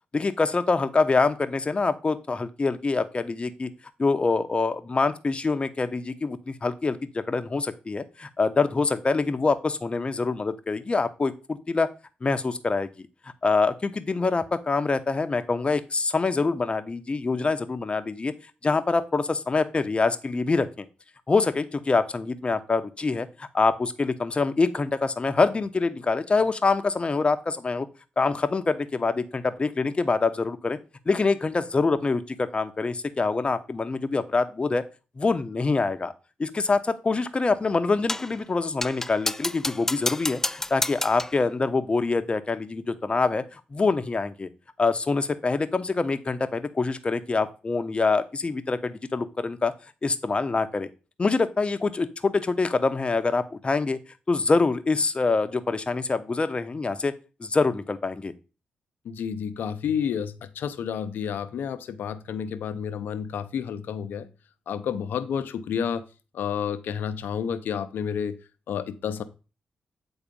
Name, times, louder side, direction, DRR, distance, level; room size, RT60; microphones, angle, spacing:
voice 1, 0.1-3.7 4.0-11.9 12.2-13.1 13.4-18.3 18.6-20.9 21.3-27.9 28.2-30.8 31.1-34.8 35.2-36.1 36.4-44.5 44.8-49.7 50.0-50.9 51.2-54.0 54.3-57.1 57.4-58.3, left 3 dB, 35° left, 10 dB, 1.0 m, -25 dB
sound 1, 38.1-38.4 38.8-41.4, left 1 dB, 15° left, 0.3 m, -30 dB
voice 2, 59.0-64.3 64.7-66.1 66.3-68.4 68.7-69.2, left 7 dB, 85° left, 10 dB, 0.8 m, -30 dB
8.6 x 4.0 x 5.4 m, 0.32 s
cardioid pair, 65°, 3 cm